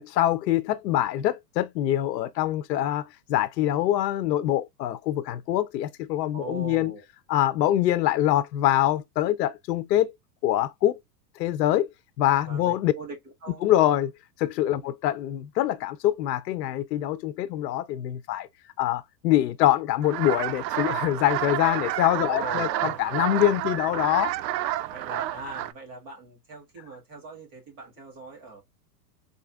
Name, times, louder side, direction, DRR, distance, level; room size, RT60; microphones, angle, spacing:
voice 1, 0.0-6.9 7.3-10.2 10.4-11.0 11.4-11.9 12.2-12.9 13.6-14.1 14.4-18.5 18.8-24.3, left 13 dB, 80° left, 0.6 m, -24 dB
voice 2, 6.3-7.0 12.4-13.7 14.7-14.9 22.3-23.1 24.8-28.6, right 2 dB, 25° right, 1.1 m, -40 dB
sound 1, 20.0-25.7, right 14 dB, 85° right, 0.6 m, -30 dB
4.2 x 2.6 x 2.2 m
supercardioid pair, 175°, 49 cm